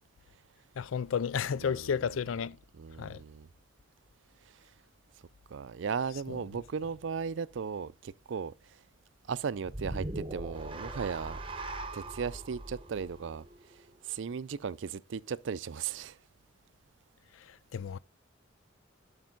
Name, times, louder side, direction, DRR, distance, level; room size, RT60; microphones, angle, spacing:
voice 1, 0.8-2.6 3.0-3.2 6.3-6.4 17.3-18.0, left 7 dB, 85° left, 0.4 m, -33 dB
voice 2, 2.8-3.5 4.4-4.7 5.5-8.8 9.3-11.4 11.9-16.2, right 6 dB, 70° right, 0.4 m, -37 dB
sound 1, 9.6-14.0, right 2 dB, 25° right, 0.8 m, -40 dB
12.0 x 5.3 x 3.8 m
head